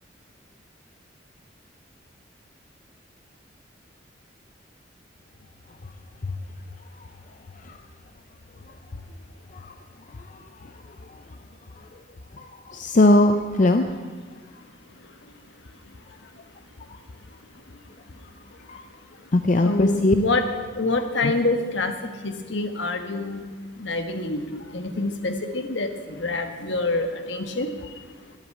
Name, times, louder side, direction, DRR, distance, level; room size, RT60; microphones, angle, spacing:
voice 1, 10.2-10.7 12.4-14.0 18.7-18.8 19.3-20.2 21.2-21.3, left 2 dB, 40° left, 7 dB, 0.6 m, -21 dB
voice 2, 19.6-20.4 20.7-23.5 23.8-28.3, left 2 dB, 75° left, 6 dB, 1.4 m, -27 dB
12.5 x 8.3 x 8.8 m, 1.4 s
head